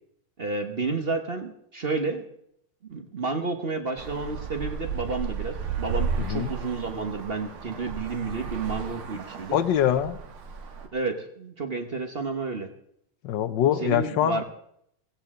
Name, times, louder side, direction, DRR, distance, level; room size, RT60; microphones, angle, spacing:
voice 1, 0.4-2.2 2.9-9.6 10.9-12.7 13.8-14.4, right 3 dB, 40° right, 6 dB, 0.9 m, -31 dB
Traffic noise roadway noise, 4.0-10.9, right 5 dB, 75° right, 2.3 m, -34 dB
voice 2, 6.2-6.5 9.5-10.2 13.2-14.4, left 10 dB, 70° left, 13 dB, 1.2 m, -24 dB
17.0 x 16.0 x 3.7 m, 0.72 s
omnidirectional pair, 2.4 m